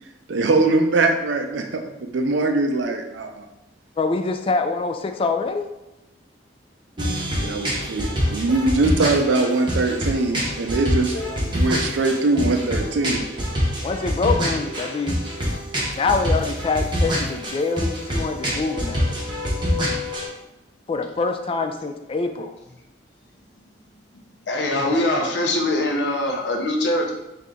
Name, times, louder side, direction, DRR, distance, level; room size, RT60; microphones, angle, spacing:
voice 1, 0.3-3.5 7.4-13.2, right 3 dB, 80° right, 5 dB, 0.5 m, -22 dB
voice 2, 4.0-5.7 11.1-11.4 13.8-15.2 15.9-19.2 20.9-22.5, left 4 dB, 30° left, 6 dB, 0.3 m, -25 dB
sound 1, 7.0-20.3, equal, 25° right, 0.8 m, -25 dB
voice 3, 24.5-27.1, left 1 dB, 65° left, 1 dB, 0.7 m, -22 dB
3.5 x 2.8 x 3.7 m, 0.93 s
head